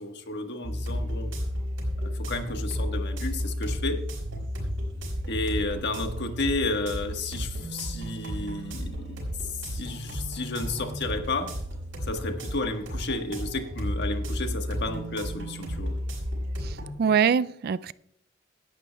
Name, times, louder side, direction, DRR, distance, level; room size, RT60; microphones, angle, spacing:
voice 1, 0.0-1.3 2.0-4.0 5.3-11.5 12.1-15.9, left 2 dB, 60° left, 6 dB, 1.4 m, -32 dB
sound 1, 0.6-16.9, equal, 75° right, 5.3 m, -33 dB
voice 2, 16.6-17.9, right 7 dB, 55° right, 17 dB, 0.3 m, -24 dB
17.0 x 11.5 x 2.3 m, 0.70 s
head